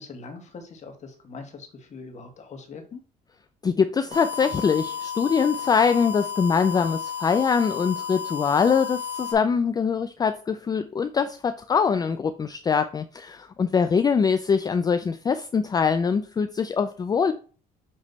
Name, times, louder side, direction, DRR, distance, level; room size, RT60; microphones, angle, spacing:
voice 1, 0.0-3.0, left 4 dB, 45° left, 5 dB, 1.6 m, -42 dB
voice 2, 3.6-17.3, left 6 dB, 25° left, 10 dB, 0.4 m, -23 dB
sound 1, 4.1-9.3, left 7 dB, 60° right, 2.2 m, -33 dB
7.3 x 3.2 x 4.0 m, 0.39 s
cardioid pair, 110°, 17 cm